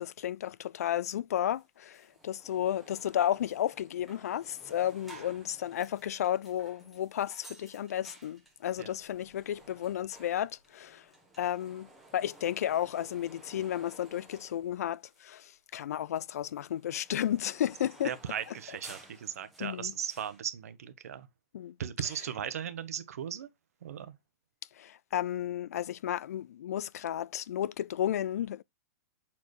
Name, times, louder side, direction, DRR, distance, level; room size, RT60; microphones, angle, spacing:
voice 1, 0.0-11.1 11.4-18.1 19.6-19.9 21.5-21.8 24.8-28.6, left 11 dB, 80° left, 0.3 m, -33 dB
sound 1, 1.5-1.6 1.9-15.4 15.7-20.4, right 2 dB, ahead, 1.1 m, -56 dB
voice 2, 18.0-21.3 21.8-23.5 23.8-24.1, right 9 dB, 70° right, 1.0 m, -37 dB
7.0 x 4.4 x 3.1 m
supercardioid pair, 180°, 8 cm